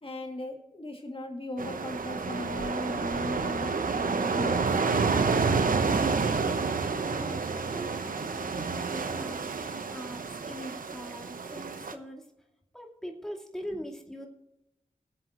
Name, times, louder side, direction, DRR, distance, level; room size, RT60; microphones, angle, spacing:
voice 1, 0.0-4.8 13.6-13.8, left 1 dB, 40° left, 2 dB, 2.4 m, -37 dB
sound 1, 1.6-11.9, right 4 dB, 80° right, 0.9 m, -29 dB
voice 2, 6.0-12.2 12.7-14.3, equal, 5° left, 0 dB, 2.4 m, -42 dB
23.0 x 7.7 x 3.0 m, 0.89 s
cardioid pair, 45°, 14 cm